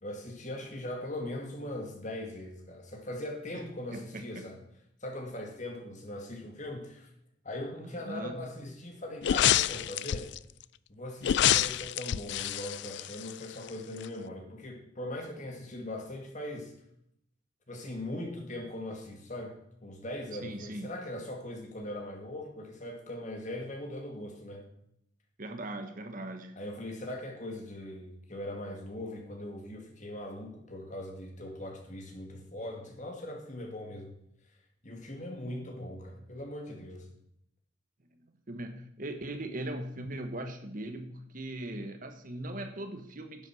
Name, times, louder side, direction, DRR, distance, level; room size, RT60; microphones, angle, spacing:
voice 1, 0.0-4.6 5.0-7.1 7.4-10.3 10.9-16.7 17.7-24.7 26.6-34.1 34.8-37.1, left 1 dB, 40° left, 3 dB, 2.2 m, -40 dB
voice 2, 3.9-4.4 7.8-8.5 20.4-20.9 25.4-26.5 38.5-43.5, right 1 dB, 45° right, 6 dB, 1.2 m, -39 dB
sound 1, 9.2-10.4 11.2-13.7 14.0-14.1, left 11 dB, 60° left, 0.3 m, -27 dB
10.5 x 8.0 x 6.2 m, 0.74 s
head